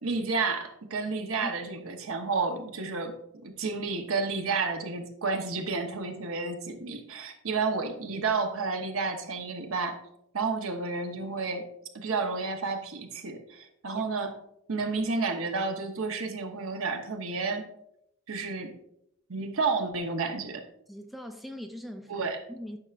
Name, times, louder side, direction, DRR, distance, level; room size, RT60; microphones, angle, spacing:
voice 1, 0.0-3.1 3.4-10.0 10.3-11.7 11.9-14.3 14.7-17.6 18.3-18.7 19.3-20.6 22.1-22.4, right 4 dB, 80° right, 5 dB, 0.9 m, -31 dB
voice 2, 1.4-1.8 3.7-3.8 13.9-14.0 20.9-22.8, equal, ahead, 5 dB, 0.4 m, -42 dB
9.7 x 5.7 x 2.5 m, 0.77 s
head